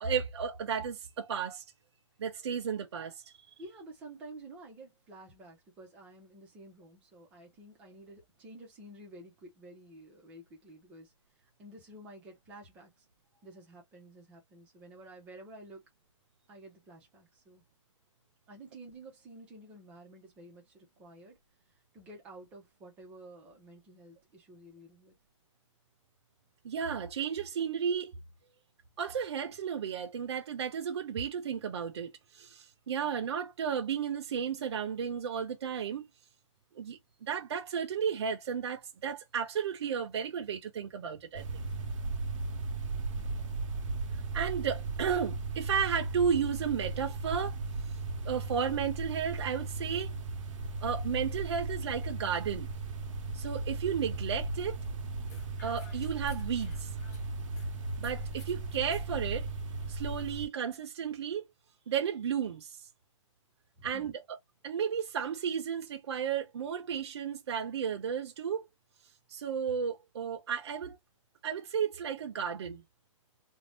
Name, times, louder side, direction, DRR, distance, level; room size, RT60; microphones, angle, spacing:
voice 1, 0.0-1.6 2.2-3.3 26.6-28.1 29.0-36.1 36.8-41.6 44.3-47.6 48.2-50.1 50.8-52.7 53.3-54.8 55.6-56.9 58.0-59.5 59.9-61.4 61.9-62.8 63.8-64.1 64.6-68.6 69.3-71.0 71.4-72.8, right 7 dB, 55° right, 0.6 m, -33 dB
voice 2, 3.6-11.1 11.6-13.0 13.4-15.8 16.5-17.6 18.5-21.4 21.9-25.1 43.1-43.5 63.8-64.1, right 1 dB, 5° right, 0.5 m, -51 dB
sound 1, 41.3-60.5, right 3 dB, 90° right, 0.7 m, -36 dB
sound 2, 55.3-57.7 58.0-59.1, left 4 dB, 30° left, 0.8 m, -57 dB
2.6 x 2.0 x 3.3 m
hypercardioid pair, 180°, 16 cm